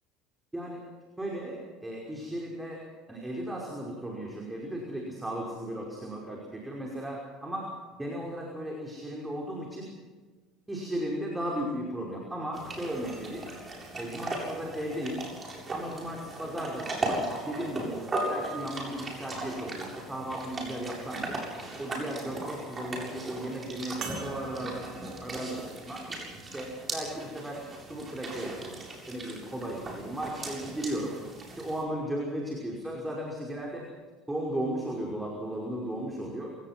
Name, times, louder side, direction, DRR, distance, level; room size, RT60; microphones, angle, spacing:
voice 1, 1.2-2.8 3.1-7.7 8.0-10.0 10.7-13.5 14.0-15.2 15.7-21.4 21.8-26.1 26.5-27.6 27.9-28.8 29.1-31.2 31.6-33.9 34.3-36.5, right 1 dB, 10° right, -2 dB, 5.4 m, -36 dB
sound 1, 12.5-31.8, right 2 dB, 30° right, 7.7 m, -38 dB
sound 2, 24.0-28.8 29.6-29.7 31.8-31.9, right 5 dB, 50° right, 4.7 m, -47 dB
27.0 x 18.0 x 6.1 m, 1.4 s
hypercardioid pair, 70°, 0 cm